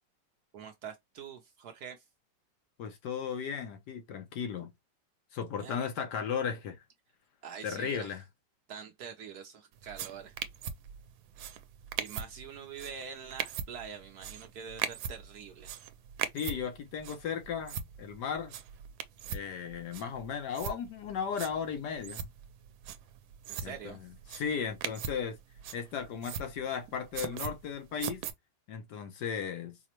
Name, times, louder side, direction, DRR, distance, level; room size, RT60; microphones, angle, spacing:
voice 1, 0.5-2.0 5.6-5.9 7.4-8.1 8.7-10.4 12.0-15.8 23.5-24.0, right 7 dB, 65° right, 1.0 m, -45 dB
voice 2, 2.8-4.7 5.3-6.8 7.6-8.2 16.3-18.5 19.3-22.3 23.6-24.0 24.3-25.4 25.7-28.2 28.7-29.8, left 7 dB, 70° left, 1.3 m, -36 dB
sound 1, 9.8-28.3, right 9 dB, 90° right, 1.3 m, -41 dB
4.8 x 2.1 x 2.9 m
omnidirectional pair, 2.0 m